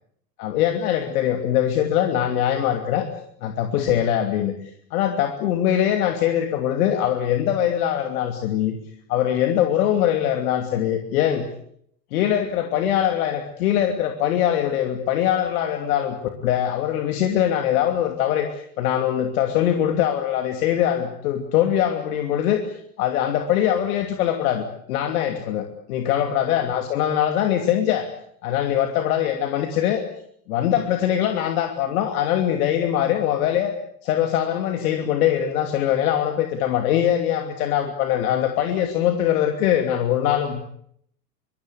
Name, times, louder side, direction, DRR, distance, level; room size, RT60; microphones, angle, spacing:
voice 1, 0.4-3.1 3.4-8.8 9.1-11.5 12.1-28.1 28.4-30.0 30.5-33.7 34.0-40.6, left 10 dB, 60° left, 6 dB, 2.9 m, -22 dB
24.5 x 23.5 x 8.3 m, 0.68 s
figure-of-eight pair, 85°, 50 cm